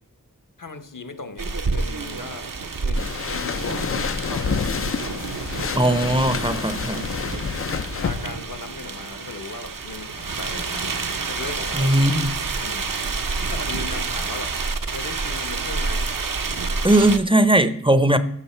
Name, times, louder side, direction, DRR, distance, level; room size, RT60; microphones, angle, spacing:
voice 1, 0.6-2.5 2.8-4.7 5.5-5.7 6.9-7.2 7.9-11.0 11.3-11.9 12.6-12.9 13.5-14.5 14.9-16.1 16.7-17.0 17.9-18.2, left 3 dB, 65° left, 1.1 m, -37 dB
sound 1, 1.4-17.2, right 4 dB, 70° right, 0.9 m, -29 dB
sound 2, 3.0-8.3, left 6 dB, 40° left, 0.4 m, -28 dB
voice 2, 5.7-7.1 11.7-12.4 16.8-18.2, right 1 dB, 15° right, 0.6 m, -18 dB
13.5 x 6.4 x 4.4 m
wide cardioid pair, 65°, 34 cm